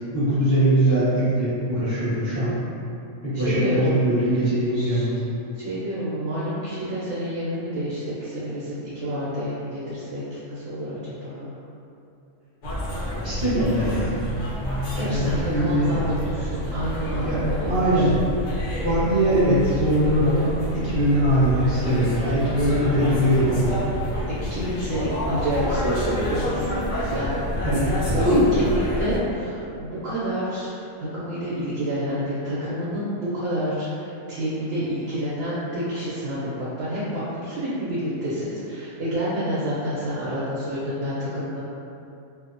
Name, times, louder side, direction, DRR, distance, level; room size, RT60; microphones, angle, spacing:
voice 1, 0.1-2.6 3.2-5.1 13.2-14.2 15.0-16.0 17.2-17.4 17.7-18.2 18.8-20.5 20.8-23.8 27.6-28.4, right 1 dB, 15° right, -15 dB, 0.7 m, -21 dB
voice 2, 3.3-3.9 4.2-4.3 4.7-5.2 5.5-11.5 15.0-18.1 24.5-27.4 28.1-30.7 31.1-41.6, equal, 75° right, -11 dB, 1.0 m, -29 dB
sound 1, 12.6-29.2, equal, 65° left, 0.4 m, -28 dB
2.8 x 2.0 x 2.5 m, 2.7 s
omnidirectional pair, 1.3 m